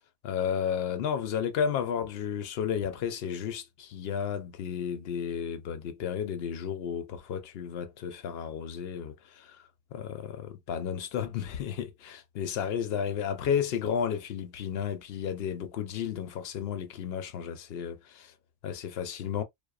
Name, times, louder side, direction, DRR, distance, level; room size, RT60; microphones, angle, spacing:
voice 1, 0.2-18.3 18.6-19.4, left 8 dB, 65° left, 0.7 m, -33 dB
2.8 x 2.0 x 2.3 m
omnidirectional pair, 1.2 m